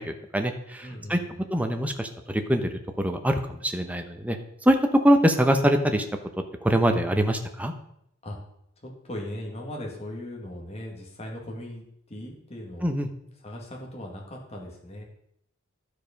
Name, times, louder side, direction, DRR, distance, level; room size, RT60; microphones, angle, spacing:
voice 1, 0.0-1.2 1.5-4.4 4.6-4.8 5.0-6.0 6.6-7.7 12.8-13.1, equal, 5° right, 6 dB, 0.8 m, -24 dB
voice 2, 0.8-1.4 8.2-8.4 8.8-12.9 13.4-15.0, left 1 dB, 30° left, -1 dB, 2.0 m, -38 dB
12.0 x 4.9 x 5.2 m, 0.74 s
head